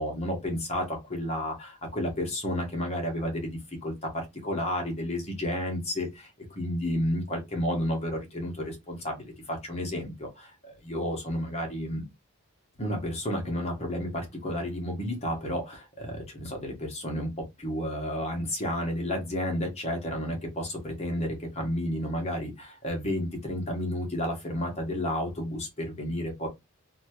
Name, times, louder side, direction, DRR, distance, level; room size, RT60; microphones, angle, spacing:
voice 1, 0.0-12.0 12.8-17.3 17.6-26.5, equal, 30° left, 0.9 m, -31 dB
2.8 x 2.3 x 2.8 m
head